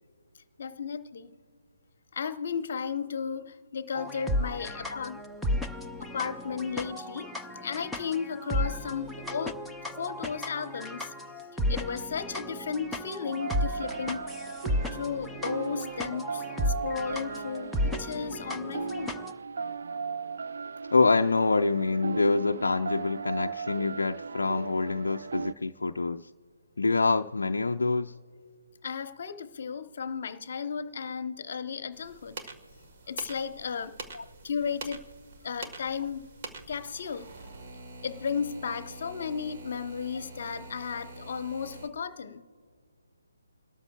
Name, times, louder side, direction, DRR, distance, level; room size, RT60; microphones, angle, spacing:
voice 1, 0.6-1.3 2.1-5.2 5.6-5.7 6.0-9.6 10.0-11.1 11.7-14.3 14.9-19.2 28.8-32.4 33.1-33.9 34.4-35.1 35.4-36.3 36.7-37.3 38.0-42.4, left 6 dB, 45° left, 0.9 m, -34 dB
sound 1, 3.9-19.3, left 1 dB, ahead, 0.6 m, -34 dB
sound 2, 13.2-25.5, right 5 dB, 55° right, 0.4 m, -37 dB
voice 2, 20.9-26.3 26.8-28.1 34.1-34.2, left 3 dB, 65° left, 0.5 m, -26 dB
sound 3, 31.9-41.9, right 3 dB, 40° right, 1.4 m, -45 dB
28.5 x 13.0 x 2.3 m
figure-of-eight pair, 145°, 0 cm